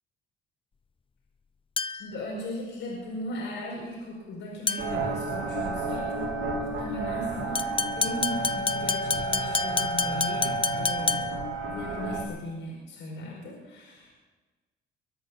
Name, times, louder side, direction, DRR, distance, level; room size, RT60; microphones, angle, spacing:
sound 1, 1.8-2.2 4.7-5.1 7.6-11.5, left 5 dB, 25° left, 0.7 m, -29 dB
voice 1, 2.0-11.3 11.7-14.1, left 1 dB, 75° left, -3 dB, 5.1 m, -37 dB
sound 2, 4.8-12.2, right 3 dB, 90° right, 2.8 m, -31 dB
23.5 x 8.6 x 7.1 m, 1.3 s
cardioid pair, 90°, 20 cm